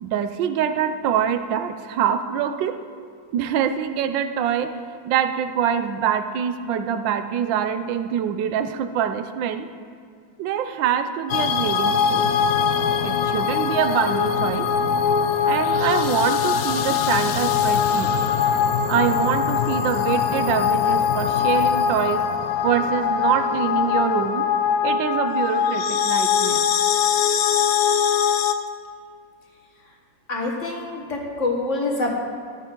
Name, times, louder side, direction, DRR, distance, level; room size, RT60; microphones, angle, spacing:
voice 1, 0.0-2.8 3.3-4.7 5.0-9.7 10.4-12.4 13.0-14.7 15.5-18.2 18.9-22.2 22.6-24.5 24.8-26.7, right 8 dB, 85° right, 9 dB, 1.4 m, -24 dB
sound 1, 11.3-28.5, left 7 dB, 70° left, 0.9 m, -22 dB
voice 2, 30.3-32.1, left 2 dB, 45° left, 0 dB, 1.5 m, -26 dB
13.0 x 10.0 x 3.7 m, 2.2 s
omnidirectional pair, 2.0 m